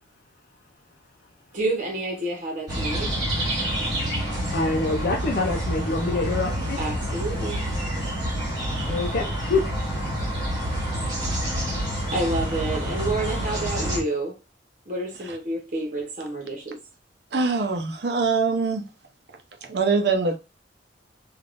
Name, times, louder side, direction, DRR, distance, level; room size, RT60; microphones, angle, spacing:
voice 1, 1.5-3.2 6.8-7.7 8.0-8.1 8.7-8.8 12.1-14.4 14.9-16.8, right 2 dB, 45° right, 1.0 m, -29 dB
sound 1, 2.7-14.0, equal, 25° right, 1.4 m, -28 dB
voice 2, 4.5-6.8 8.8-9.7 11.4-11.6, left 3 dB, 55° left, 0.6 m, -26 dB
voice 3, 17.3-18.8 19.7-20.4, right 4 dB, 65° right, 0.7 m, -23 dB
3.5 x 2.5 x 2.5 m
head